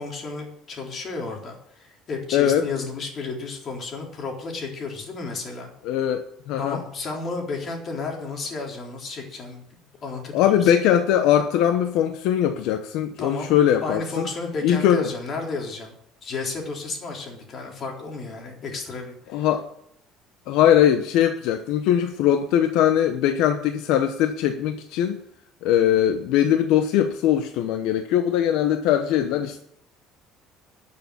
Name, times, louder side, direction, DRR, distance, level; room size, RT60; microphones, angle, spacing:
voice 1, 0.0-5.7 6.6-9.7 10.0-10.7 13.2-13.5 13.8-15.9 16.2-19.5, left 3 dB, 35° left, 1 dB, 3.7 m, -32 dB
voice 2, 2.3-2.6 5.8-6.8 10.3-14.3 14.6-15.1 19.3-19.6 20.5-25.2 25.6-29.6, left 10 dB, 75° left, 8 dB, 0.9 m, -21 dB
12.5 x 6.9 x 9.6 m, 0.73 s
cardioid pair, 145°, 0 cm